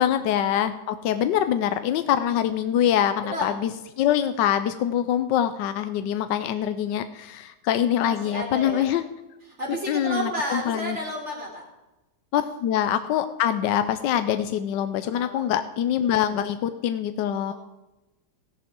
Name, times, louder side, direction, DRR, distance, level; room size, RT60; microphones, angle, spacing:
voice 1, 0.0-3.7 4.0-9.0 9.9-11.0 12.3-17.5, left 10 dB, 85° left, 10 dB, 1.3 m, -24 dB
voice 2, 8.0-9.0 9.6-11.6 15.0-15.5 17.5-17.6, equal, 40° right, -2 dB, 4.0 m, -32 dB
16.0 x 11.0 x 4.5 m, 1.0 s
omnidirectional pair, 1.9 m